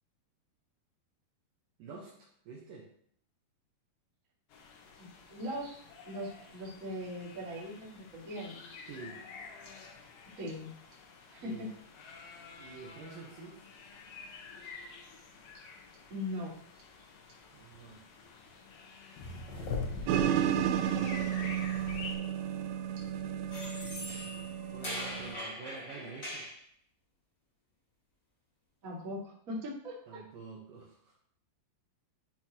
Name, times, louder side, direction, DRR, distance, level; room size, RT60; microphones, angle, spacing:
voice 1, 1.8-2.9 8.9-9.2 11.4-11.8 12.6-13.6 17.5-18.0 19.4-21.6 24.7-26.5 30.1-31.2, right 4 dB, 70° right, -3 dB, 2.3 m, -48 dB
sound 1, 4.5-22.2, left 4 dB, 70° left, 2.3 m, -46 dB
voice 2, 5.0-5.8 6.0-8.6 10.4-10.7 11.3-11.7 16.1-16.5 28.8-30.2, left 1 dB, 30° right, -5 dB, 1.6 m, -40 dB
sound 2, 20.1-25.4, right 10 dB, 85° right, 2.5 m, -32 dB
sound 3, 23.5-26.6, left 1 dB, 45° left, 1.0 m, -41 dB
10.5 x 4.5 x 2.9 m, 0.64 s
omnidirectional pair, 4.6 m